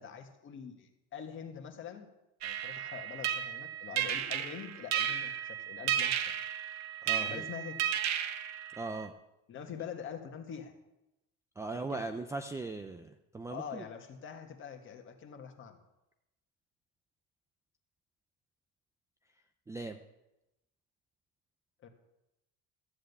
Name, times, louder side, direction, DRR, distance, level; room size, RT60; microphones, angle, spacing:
voice 1, 0.0-2.1 2.4-6.2 7.2-7.7 9.5-10.7 11.7-12.1 13.5-15.8 21.8-21.9, left 7 dB, 35° left, 5 dB, 1.7 m, -45 dB
sound 1, 2.4-9.1, right 10 dB, 50° right, 1.1 m, -34 dB
voice 2, 7.0-7.5 8.8-9.1 11.6-13.8 19.7-20.0, right 3 dB, 10° right, 7 dB, 0.4 m, -39 dB
13.0 x 7.7 x 8.1 m, 0.94 s
cardioid pair, 155°, 33 cm